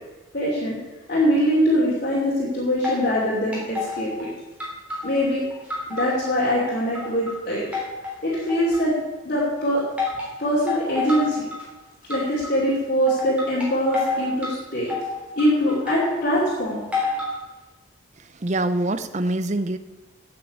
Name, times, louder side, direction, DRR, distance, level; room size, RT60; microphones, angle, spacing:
voice 1, 0.3-0.8 1.1-4.3 5.0-5.4 5.9-7.6 8.2-8.9 9.2-9.8 10.4-11.5 12.1-14.9 15.4-17.1, equal, 40° left, -7 dB, 2.8 m, -23 dB
sound 1, 2.8-3.2 3.5-4.3 4.6-6.3 6.7-7.3 7.7-9.0 10.0-10.3 10.7-11.6 12.1-12.5 13.1-14.5 14.9-16.2 16.9-17.4, left 4 dB, 5° right, 3.4 m, -29 dB
voice 2, 18.4-19.8, right 2 dB, 35° right, 12 dB, 0.6 m, -24 dB
8.6 x 7.8 x 8.4 m, 1.1 s
head